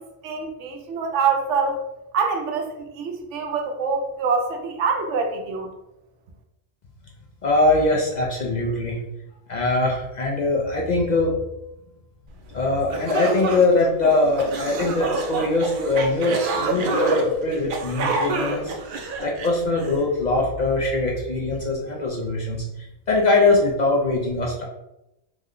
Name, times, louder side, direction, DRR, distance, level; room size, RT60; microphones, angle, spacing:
voice 1, 0.0-1.8 2.1-5.7, right 5 dB, 90° right, 3 dB, 0.9 m, -25 dB
voice 2, 7.4-9.0 9.5-11.3 12.5-18.7 19.2-24.7, left 2 dB, 55° left, -2 dB, 0.5 m, -22 dB
sound 1, 12.5-12.6 12.9-20.0, right 3 dB, 60° right, 0.6 m, -27 dB
3.1 x 2.1 x 3.6 m, 0.91 s
omnidirectional pair, 1.2 m